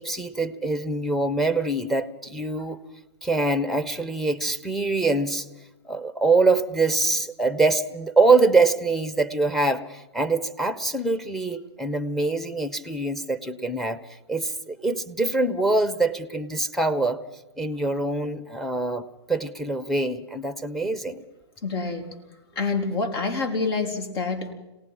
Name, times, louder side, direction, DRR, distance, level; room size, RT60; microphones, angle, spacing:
voice 1, 0.0-2.8 3.2-5.5 5.9-14.0 14.3-17.2 17.6-21.2, right 3 dB, ahead, 12 dB, 1.0 m, -24 dB
voice 2, 21.6-22.1 22.5-24.5, left 4 dB, 55° left, 5 dB, 3.8 m, -27 dB
27.0 x 18.5 x 5.7 m, 1.0 s
hypercardioid pair, 125°, 15 cm